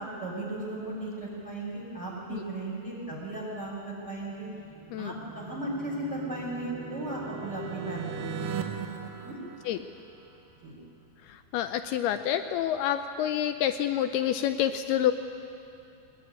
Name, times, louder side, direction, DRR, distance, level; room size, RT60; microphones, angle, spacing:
voice 1, 0.0-4.5 5.0-8.5 8.8-9.4 10.6-10.8, right 2 dB, 20° right, -6 dB, 6.0 m, -36 dB
sound 1, 4.5-10.3, right 6 dB, 70° right, 2.3 m, -39 dB
voice 2, 11.2-15.1, left 10 dB, 80° left, 9 dB, 2.4 m, -28 dB
22.0 x 20.5 x 9.9 m, 2.6 s
omnidirectional pair, 5.1 m